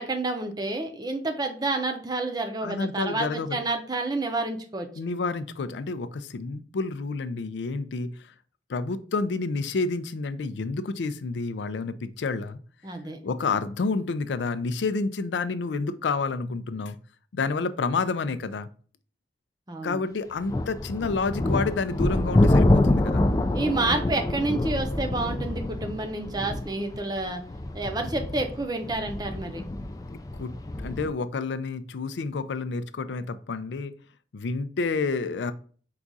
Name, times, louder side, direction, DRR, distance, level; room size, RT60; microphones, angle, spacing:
voice 1, 0.0-4.9 12.8-13.2 19.7-20.0 23.5-27.4 27.7-29.6, right 2 dB, 25° right, 5 dB, 0.6 m, -29 dB
voice 2, 2.6-3.6 5.0-8.3 8.7-12.6 13.2-17.0 17.3-18.7 19.8-23.3 30.4-30.5 30.8-33.9 34.3-35.5, left 4 dB, 85° left, 12 dB, 0.4 m, -29 dB
sound 1, 20.4-31.1, left 1 dB, 20° left, 0.3 m, -26 dB
4.8 x 2.4 x 3.9 m, 0.43 s
head